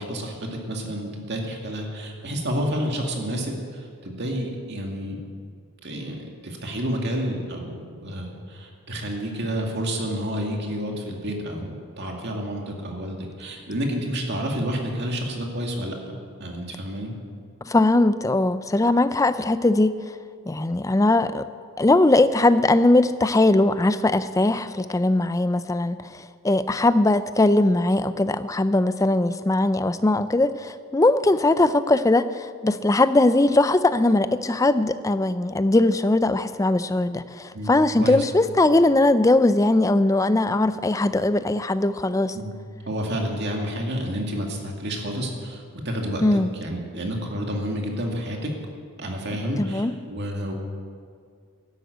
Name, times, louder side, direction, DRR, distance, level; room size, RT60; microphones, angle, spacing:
voice 1, 0.0-5.2 5.8-16.1 16.4-17.1 37.5-37.7 38.0-38.2 42.3-42.5 42.9-48.5 49.0-50.5, equal, 50° right, 1 dB, 2.3 m, -30 dB
voice 2, 17.6-19.9 20.5-21.4 21.8-42.4 46.2-46.5 49.6-49.9, left 2 dB, 15° left, 13 dB, 0.4 m, -20 dB
12.5 x 11.0 x 8.0 m, 2.2 s
head